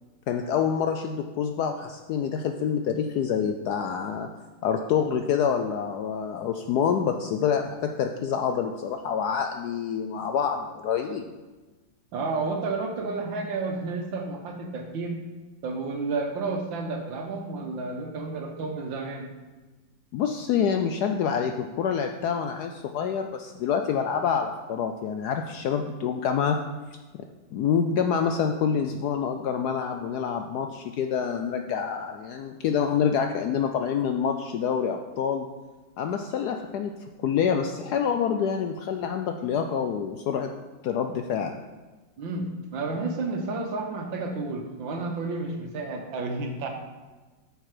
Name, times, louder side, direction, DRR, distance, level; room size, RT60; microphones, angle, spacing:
voice 1, 0.3-4.3 4.6-11.3 20.1-26.6 27.5-35.5 36.0-36.9 37.2-40.5 40.8-41.6, left 7 dB, 75° left, 5 dB, 0.9 m, -27 dB
voice 2, 12.1-15.2 15.6-19.3 42.2-46.7, right 3 dB, 75° right, 4 dB, 1.8 m, -31 dB
8.2 x 6.7 x 4.9 m, 1.2 s
omnidirectional pair, 2.1 m